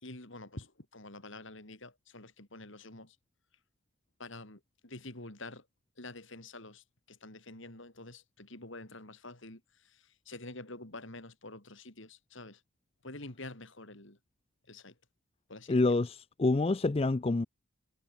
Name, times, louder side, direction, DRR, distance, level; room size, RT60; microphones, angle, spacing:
voice 1, 0.0-3.2 4.2-5.7 6.0-12.6 13.0-14.2 14.7-14.9 15.5-15.8, left 2 dB, 60° left, 3.8 m, -47 dB
voice 2, 15.7-17.5, left 2 dB, 25° left, 0.4 m, -27 dB
head